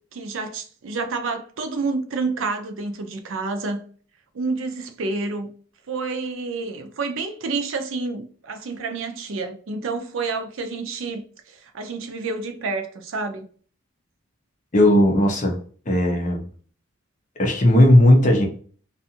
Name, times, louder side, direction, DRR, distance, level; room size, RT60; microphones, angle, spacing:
voice 1, 0.1-3.8 4.3-5.5 5.9-11.2 11.7-13.5, right 3 dB, 65° right, 0.5 m, -29 dB
voice 2, 14.7-15.6 15.9-16.5 17.4-18.5, left 1 dB, 35° left, 0.6 m, -16 dB
2.5 x 2.4 x 2.7 m
head